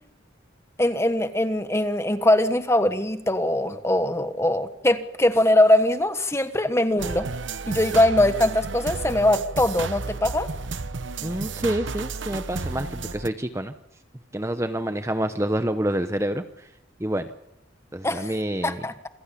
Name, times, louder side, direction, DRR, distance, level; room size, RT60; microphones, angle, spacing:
voice 1, 0.8-7.3 7.7-10.5 18.0-18.3 18.6-18.9, left 1 dB, 15° left, 10 dB, 1.3 m, -21 dB
sound 1, 7.0-13.3, right 4 dB, 75° right, 1.0 m, -32 dB
voice 2, 11.2-13.7 14.3-16.4 17.0-17.3 17.9-18.8, right 1 dB, 15° right, 9 dB, 0.9 m, -27 dB
27.5 x 16.0 x 8.5 m, 0.80 s
head